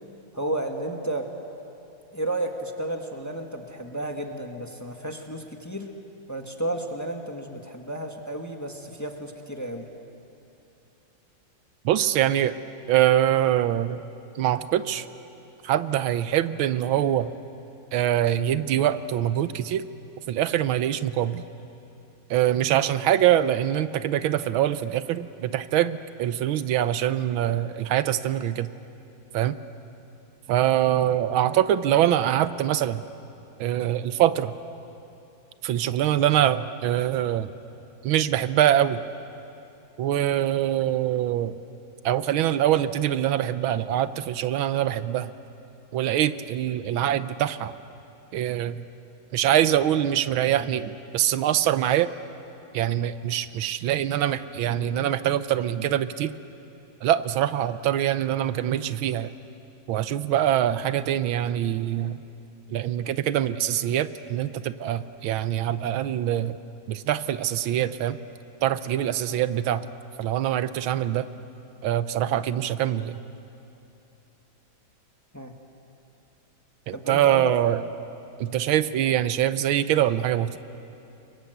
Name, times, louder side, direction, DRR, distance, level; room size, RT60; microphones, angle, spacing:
voice 1, 0.3-1.3 2.1-5.9 6.3-9.9 75.3-75.5 76.9-77.5, right 1 dB, 10° left, 3 dB, 1.5 m, -32 dB
voice 2, 11.8-12.6 12.9-14.0 14.4-15.1 15.6-17.3 17.9-19.9 20.3-21.4 22.3-28.7 29.3-29.5 30.5-33.0 33.6-34.5 35.6-37.5 38.0-39.0 40.0-41.5 42.0-45.3 45.9-47.7 48.3-48.8 49.3-52.1 52.7-56.3 57.0-59.3 59.9-62.2 62.7-66.6 66.9-68.2 68.6-69.9 70.2-71.3 71.8-73.2 76.9-77.8 78.4-80.6, right 11 dB, 90° right, 13 dB, 1.6 m, -24 dB
30.0 x 23.5 x 8.1 m, 2.8 s
omnidirectional pair, 2.2 m